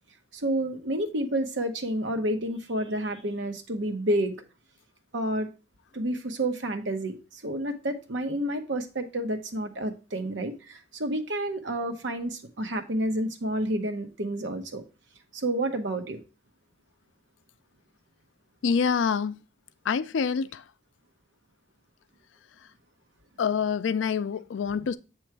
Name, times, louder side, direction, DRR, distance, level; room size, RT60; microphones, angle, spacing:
voice 1, 0.3-4.4 5.1-5.5 5.9-14.8 15.3-16.2, right 1 dB, 75° right, 0.9 m, -30 dB
voice 2, 18.6-19.4 19.9-20.6 23.4-25.0, left 6 dB, 80° left, 0.4 m, -26 dB
7.6 x 3.1 x 4.5 m
head